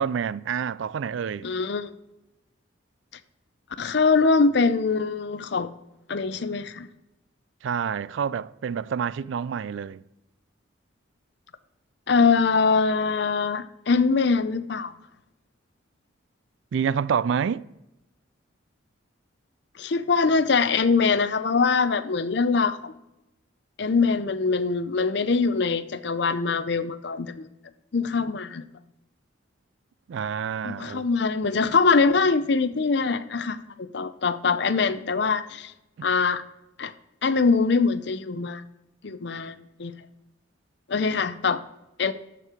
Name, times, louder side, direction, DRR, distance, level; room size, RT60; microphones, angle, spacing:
voice 1, 0.0-1.5 7.6-10.0 16.7-17.6 30.1-31.1, right 7 dB, 65° right, 0.3 m, -28 dB
voice 2, 1.4-2.0 3.8-5.7 6.1-6.9 12.1-14.9 19.8-22.9 23.8-27.5 27.9-28.6 30.6-35.7 36.0-36.4 36.8-36.9 37.2-38.6 39.0-39.9 40.9-41.6 42.0-42.1, left 4 dB, 55° left, 0.6 m, -23 dB
13.5 x 4.6 x 4.9 m
head